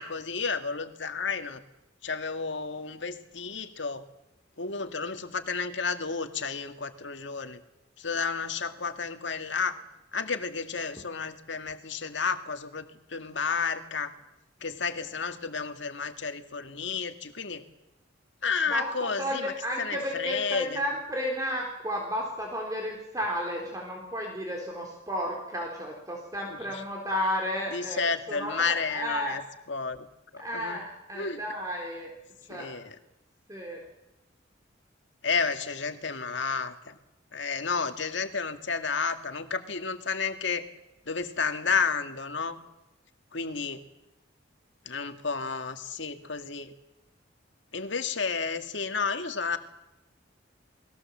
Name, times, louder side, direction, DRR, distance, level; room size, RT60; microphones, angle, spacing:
voice 1, 0.0-1.6 2.0-4.0 4.6-7.6 8.0-9.8 10.1-14.1 14.6-17.6 18.4-20.8 26.5-26.8 27.7-29.4 29.7-30.1 30.3-30.8 31.1-31.4 32.5-33.0 35.2-37.0 37.3-40.7 41.1-42.6 43.3-43.8 44.9-46.7 47.7-49.6, left 5 dB, 75° left, 7 dB, 1.9 m, -31 dB
voice 2, 18.7-29.4 30.4-32.1 32.5-32.7 33.5-33.8, equal, 20° right, 0 dB, 3.9 m, -33 dB
29.5 x 20.5 x 7.4 m, 0.94 s
head